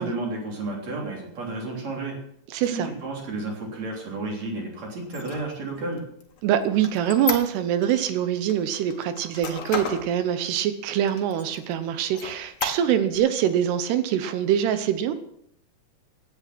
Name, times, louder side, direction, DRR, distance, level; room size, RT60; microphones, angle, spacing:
voice 1, 0.0-2.2 2.7-6.0, right 2 dB, 40° right, 0 dB, 4.2 m, -32 dB
voice 2, 2.5-2.9 6.4-15.1, right 10 dB, 75° right, 11 dB, 2.8 m, -24 dB
Squeak, 5.0-8.0 8.5-10.1 10.6-10.7 11.1-11.7 12.1-13.2, left 6 dB, 65° left, 3.4 m, -33 dB
16.5 x 10.5 x 6.0 m, 0.73 s
omnidirectional pair, 5.1 m